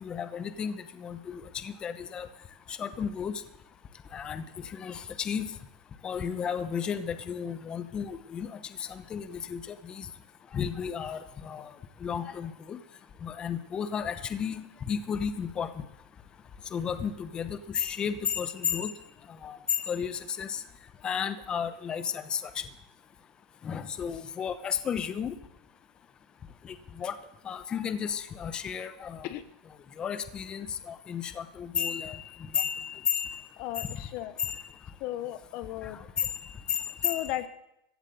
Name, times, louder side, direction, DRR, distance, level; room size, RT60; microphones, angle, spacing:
voice 1, 0.0-2.3 2.7-3.3 4.1-4.4 4.7-5.5 6.0-8.5 8.9-10.1 10.5-11.2 11.4-11.7 12.0-12.8 13.2-14.6 14.9-15.7 16.7-18.9 19.4-20.6 21.0-22.4 23.6-25.3 27.0-27.1 27.4-29.3 30.0-33.5 33.8-33.9 34.4-34.7 36.2-37.5, left 7 dB, 25° left, 11 dB, 1.0 m, -33 dB
voice 2, 33.6-34.4 35.0-36.0 37.0-37.5, left 14 dB, 50° left, 12 dB, 0.9 m, -35 dB
15.5 x 8.1 x 8.0 m, 0.83 s
supercardioid pair, 135°, 4 cm